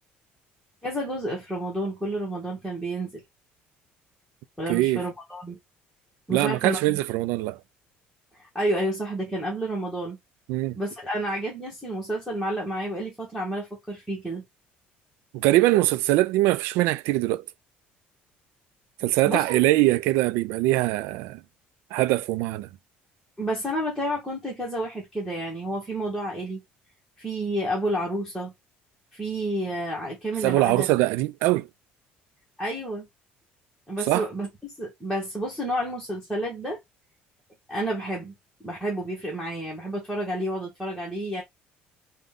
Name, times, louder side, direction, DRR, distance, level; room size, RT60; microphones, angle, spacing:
voice 1, 0.8-3.2 4.6-5.6 6.3-7.0 8.3-10.2 10.8-14.4 19.2-19.6 23.4-26.6 27.2-28.5 29.1-30.9 32.6-33.1 33.9-36.8 37.7-38.3 38.6-41.4, right 1 dB, ahead, 1.0 m, -30 dB
voice 2, 4.7-5.0 6.3-7.6 10.5-10.8 15.3-17.4 19.0-21.4 21.9-22.7 30.4-31.7 34.1-34.3, right 17 dB, 90° right, 0.3 m, -22 dB
3.8 x 2.1 x 3.5 m
cardioid pair, 175°, 4 cm